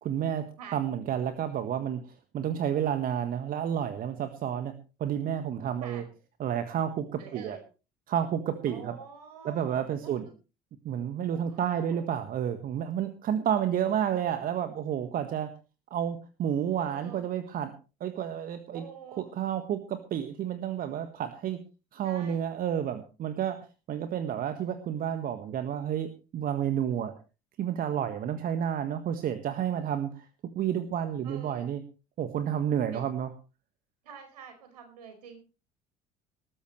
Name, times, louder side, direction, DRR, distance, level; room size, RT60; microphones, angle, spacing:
voice 1, 0.0-4.7 5.0-6.0 6.4-7.6 8.1-9.0 9.4-10.2 10.8-15.5 15.9-17.7 18.0-18.8 19.3-21.6 21.9-27.1 27.6-30.3 30.5-31.8 32.2-33.3, right 9 dB, 45° right, 9 dB, 1.5 m, -30 dB
voice 2, 7.2-7.6 8.7-9.7 10.0-10.1 11.3-12.0 16.8-17.2 18.7-19.3 22.0-22.4 31.2-31.7 32.9-33.0 34.0-35.4, right 6 dB, 70° right, 5 dB, 5.0 m, -46 dB
19.5 x 14.0 x 3.2 m, 0.33 s
figure-of-eight pair, 60°, 21 cm